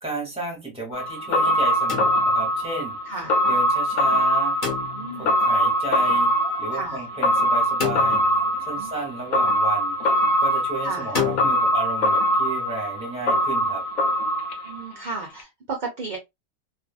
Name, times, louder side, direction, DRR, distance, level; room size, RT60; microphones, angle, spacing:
voice 1, 0.0-3.0 3.5-4.6 5.2-8.2 8.7-10.1 10.4-13.8, right 2 dB, 5° right, 1.1 m, -33 dB
sound 1, 0.9-15.1 15.4-15.5, equal, 85° left, 1.1 m, -22 dB
sound 2, 1.9-2.6 4.6-5.3 7.8-8.7 11.1-11.5, left 6 dB, 40° left, 1.1 m, -29 dB
voice 2, 3.1-3.4 4.9-5.3 6.7-7.0 8.8-8.9 10.8-11.1 14.6-16.2, right 3 dB, 45° right, 0.7 m, -33 dB
2.6 x 2.5 x 2.4 m
omnidirectional pair, 1.4 m